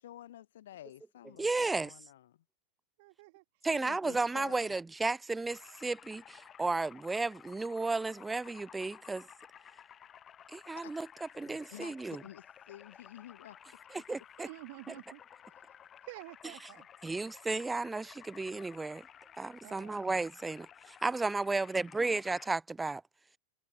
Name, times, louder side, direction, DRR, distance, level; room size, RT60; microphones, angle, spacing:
voice 1, 0.0-2.4 3.7-4.7 10.7-10.9 11.5-13.6, left 12 dB, 60° left, 0.9 m, -51 dB
voice 2, 1.4-1.9 3.6-5.6 5.8-6.2 6.6-9.2 10.7-11.1 11.4-12.2 14.1-14.5 17.0-18.1 18.4-19.0 19.4-20.7 21.0-23.0, right 3 dB, 10° right, 0.3 m, -33 dB
voice 3, 3.0-3.7 14.4-15.2 16.0-16.9 19.6-20.1, right 23 dB, 50° right, 1.6 m, -49 dB
sound 1, 5.5-22.5, left 9 dB, 25° left, 0.7 m, -55 dB
figure-of-eight pair, 90°, 0 cm